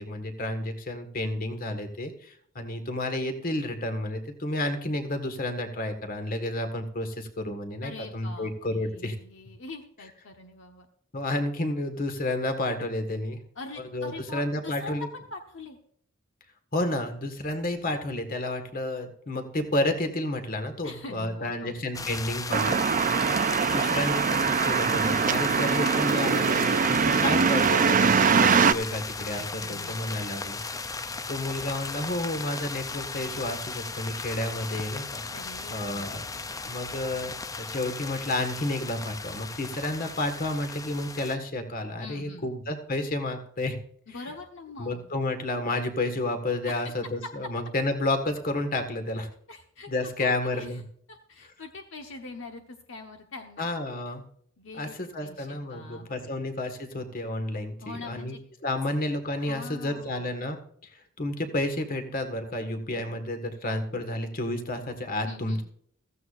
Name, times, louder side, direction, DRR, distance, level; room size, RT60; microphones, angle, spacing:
voice 1, 0.0-9.2 11.1-13.4 13.9-15.1 16.7-22.8 23.6-30.8 31.3-35.2 35.7-36.2 36.6-43.8 44.8-49.3 49.9-50.8 53.6-54.2 54.8-58.4 58.6-60.6 60.8-65.6, left 1 dB, 45° left, 6 dB, 1.8 m, -31 dB
voice 2, 7.8-10.9 13.5-15.8 20.8-22.1 29.3-30.0 35.3-36.5 42.0-42.5 44.1-45.1 46.7-46.9 49.5-49.9 50.2-50.8 51.1-53.7 54.6-56.4 57.8-58.4 59.4-60.3 65.2-65.6, left 3 dB, 65° left, 4 dB, 1.2 m, -43 dB
sound 1, 21.9-41.4, left 4 dB, 15° left, 0.5 m, -36 dB
sound 2, 22.5-28.7, right 6 dB, 40° right, 0.5 m, -23 dB
15.5 x 15.0 x 2.6 m, 0.64 s
head